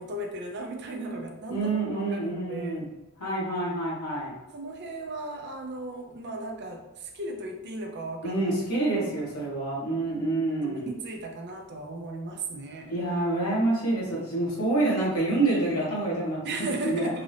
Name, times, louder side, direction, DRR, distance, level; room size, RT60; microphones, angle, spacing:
voice 1, 0.0-2.9 4.5-8.4 9.0-9.2 10.6-13.0 16.4-17.2, right 2 dB, 50° right, 2 dB, 0.5 m, -36 dB
voice 2, 1.5-2.9 3.2-4.3 8.2-10.9 12.9-16.5 16.8-17.1, right 2 dB, 80° left, -6 dB, 1.5 m, -27 dB
3.8 x 2.5 x 3.3 m, 1.0 s
head